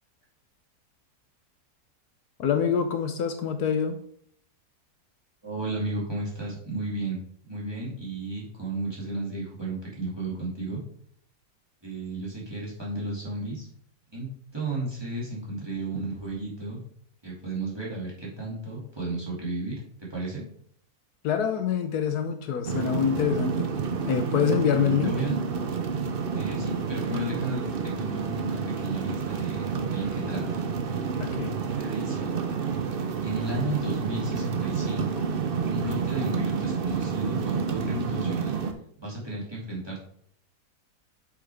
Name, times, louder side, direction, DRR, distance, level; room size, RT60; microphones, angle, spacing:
voice 1, 2.4-4.0 21.2-23.7 24.1-25.1 31.2-31.6, left 7 dB, 70° left, 7 dB, 1.2 m, -25 dB
voice 2, 5.4-7.2 7.4-10.8 11.8-13.7 14.1-16.8 17.2-20.4 24.8-25.4 26.3-30.6 31.8-32.3 33.2-35.3 35.6-38.5 39.0-40.0, right 2 dB, 15° right, -5 dB, 2.3 m, -33 dB
sound 1, 22.6-38.7, right 5 dB, 55° right, 0.6 m, -29 dB
7.7 x 6.5 x 3.4 m, 0.64 s
omnidirectional pair, 1.8 m